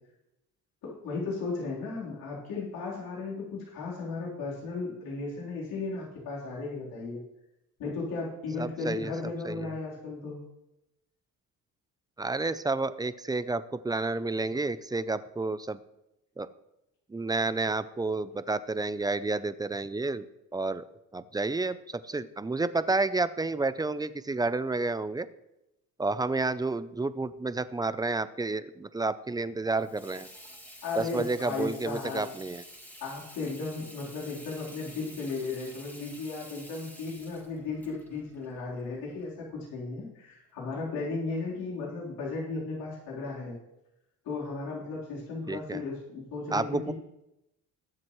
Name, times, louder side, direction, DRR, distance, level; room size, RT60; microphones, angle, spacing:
voice 1, 0.8-7.2 7.8-10.4 30.8-32.3 33.0-43.6 44.2-46.9, left 3 dB, 85° left, -5 dB, 3.9 m, -35 dB
voice 2, 8.6-9.1 9.4-9.7 12.2-15.8 16.4-16.5 17.1-20.2 20.5-20.8 21.1-25.3 26.0-30.3 31.0-32.6 45.5-45.8 46.5-46.9, right 3 dB, 10° right, 14 dB, 0.5 m, -30 dB
Water tap faucet / Sink (filling or washing), 29.7-39.3, equal, 5° left, 2.3 m, -50 dB
20.5 x 7.6 x 3.2 m, 0.88 s
cardioid pair, 110°, 35 cm